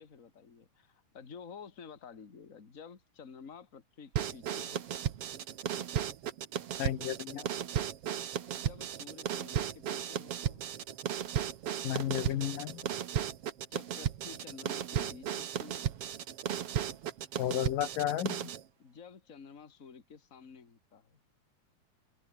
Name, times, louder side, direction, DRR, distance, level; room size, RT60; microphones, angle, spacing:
voice 1, 0.0-5.0 8.5-10.7 13.7-15.9 18.8-21.2, left 6 dB, 25° left, 2.3 m, -51 dB
sound 1, 4.1-18.6, right 10 dB, 55° right, 2.1 m, -35 dB
voice 2, 6.8-7.5 11.8-12.8 17.4-18.5, left 12 dB, 85° left, 3.2 m, -33 dB
open air
omnidirectional pair, 3.8 m